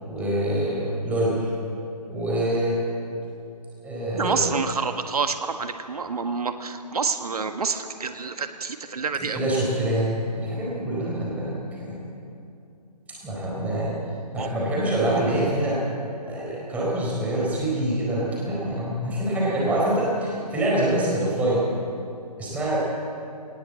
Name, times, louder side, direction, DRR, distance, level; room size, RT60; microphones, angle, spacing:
voice 1, 0.0-1.5 1.8-2.8 3.8-4.6 9.3-12.1 13.2-14.0 14.3-15.8 16.2-21.6 22.4-22.8, right 1 dB, 5° right, -5 dB, 4.5 m, -25 dB
voice 2, 4.2-9.4 14.4-14.5, right 5 dB, 65° right, 8 dB, 1.6 m, -28 dB
19.5 x 18.5 x 8.5 m, 2.7 s
figure-of-eight pair, 155°, 21 cm